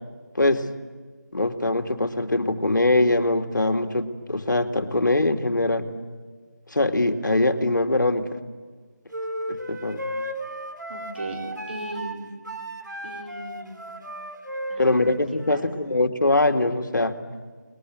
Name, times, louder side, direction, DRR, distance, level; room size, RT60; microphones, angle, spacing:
voice 1, 1.3-5.9 6.7-8.2 9.5-10.0 14.8-17.1, left 2 dB, 80° left, 7 dB, 2.3 m, -22 dB
sound 1, 9.1-15.6, right 1 dB, 80° right, 3.6 m, -35 dB
voice 2, 10.9-11.4 11.7-12.3 13.0-13.9 14.7-15.1 15.5-15.7, right 1 dB, 35° right, 2 dB, 4.8 m, -37 dB
29.5 x 21.0 x 9.5 m, 1.5 s
figure-of-eight pair, 175°, 10 cm